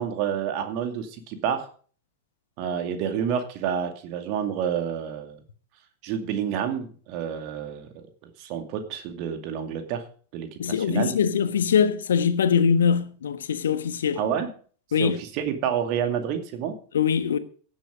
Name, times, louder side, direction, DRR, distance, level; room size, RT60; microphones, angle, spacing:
voice 1, 0.0-1.7 2.6-5.4 6.0-10.0 10.3-10.5 10.9-11.1 14.2-14.5 15.0-16.8, right 8 dB, 45° right, 2.3 m, -29 dB
voice 2, 10.6-14.2 14.9-15.2 16.9-17.4, left 7 dB, 65° left, 1.2 m, -22 dB
16.0 x 7.6 x 5.1 m
figure-of-eight pair, 90°, 0 cm